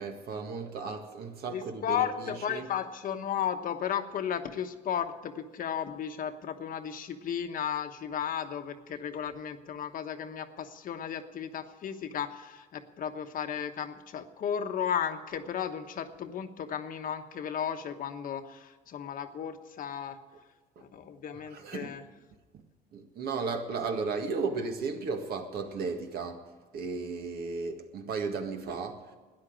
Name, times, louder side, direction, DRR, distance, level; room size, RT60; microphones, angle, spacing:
voice 1, 0.0-2.7 21.5-21.9 22.5-22.6 22.9-26.5 26.7-29.0, right 4 dB, 65° right, 5 dB, 1.9 m, -35 dB
voice 2, 1.5-20.2 20.8-22.0, left 8 dB, 55° left, 7 dB, 1.2 m, -34 dB
13.0 x 10.0 x 8.9 m, 1.2 s
cardioid pair, 110°, 17 cm